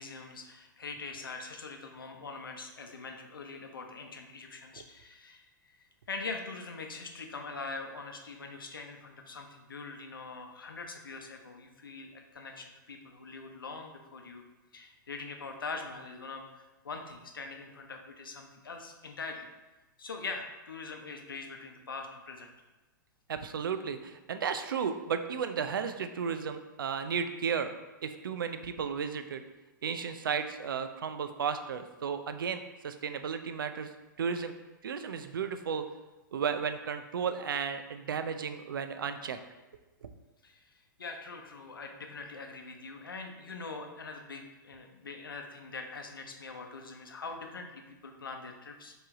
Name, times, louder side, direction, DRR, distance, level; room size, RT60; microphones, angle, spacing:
voice 1, 0.0-5.4 6.1-14.4 14.7-19.5 20.0-22.5 40.4-40.6 41.0-48.9, left 4 dB, 85° left, 4 dB, 0.7 m, -43 dB
voice 2, 23.3-27.7 28.0-29.4 29.8-33.9 34.2-34.5 34.8-35.9 36.3-39.4 40.0-40.1, right 6 dB, 80° right, 9 dB, 0.4 m, -34 dB
4.7 x 3.1 x 3.6 m, 1.1 s
hypercardioid pair, 115°, 11 cm